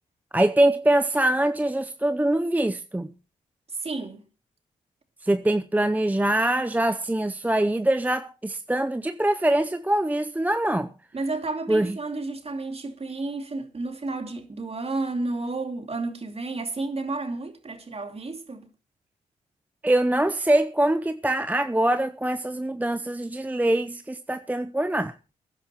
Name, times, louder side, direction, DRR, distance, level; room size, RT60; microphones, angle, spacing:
voice 1, 0.3-3.1 5.2-10.9 11.7-12.0 19.8-25.1, right 1 dB, 10° right, 0.7 m, -23 dB
voice 2, 3.7-4.2 11.1-18.7, right 3 dB, 40° right, 2.7 m, -31 dB
22.0 x 10.5 x 3.0 m
hypercardioid pair, 40°, 16 cm